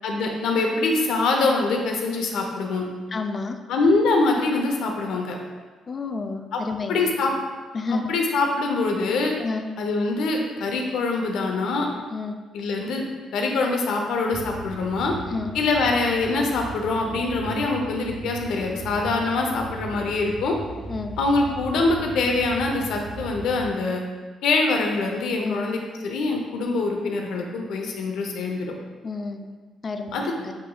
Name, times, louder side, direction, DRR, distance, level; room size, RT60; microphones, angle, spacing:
voice 1, 0.0-2.8 3.7-5.4 6.5-6.6 6.9-7.3 8.1-9.3 9.8-11.9 12.5-13.0 13.3-15.1 15.5-20.6 21.2-24.0 24.4-28.7 30.1-30.2, left 3 dB, 80° left, 2 dB, 0.7 m, -24 dB
voice 2, 3.1-3.6 5.9-7.1 7.7-8.1 9.4-9.7 12.1-12.4 15.3-15.5 20.9-21.2 25.4-25.6 29.0-29.5 29.8-30.5, left 3 dB, 35° left, 6 dB, 0.3 m, -30 dB
sound 1, 14.3-23.7, right 4 dB, 50° right, 0.5 m, -38 dB
7.3 x 2.9 x 2.3 m, 1.4 s
cardioid pair, 90°, 0 cm